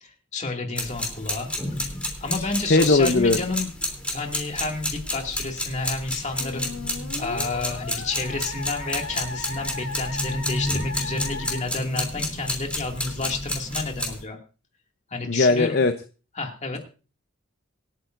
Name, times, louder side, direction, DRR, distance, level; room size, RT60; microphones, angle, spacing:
voice 1, 0.0-1.8 2.2-3.7 4.0-6.7 7.2-14.4 15.1-15.8 16.3-16.8, left 3 dB, 35° left, 2 dB, 2.3 m, -30 dB
sound 1, 0.8-14.2, left 1 dB, 5° left, 3.2 m, -31 dB
voice 2, 2.7-3.4 15.3-15.9, left 3 dB, 50° left, 9 dB, 0.7 m, -18 dB
Musical instrument, 6.4-11.6, left 3 dB, 65° left, 1.7 m, -37 dB
26.5 x 9.1 x 2.6 m, 0.36 s
head